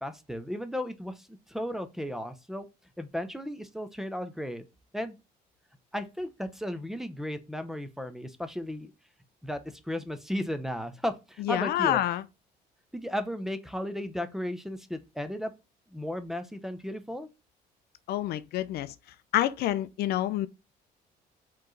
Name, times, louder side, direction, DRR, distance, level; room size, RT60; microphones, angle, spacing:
voice 1, 0.0-2.7 3.0-4.6 4.9-5.2 5.9-8.9 9.4-12.0 12.9-15.5 15.9-17.3, equal, ahead, 0.6 m, -35 dB
voice 2, 11.4-12.2 18.1-18.9 19.3-20.5, left 13 dB, 70° left, 0.4 m, -27 dB
4.4 x 3.1 x 3.8 m
cardioid pair, 110°, 17 cm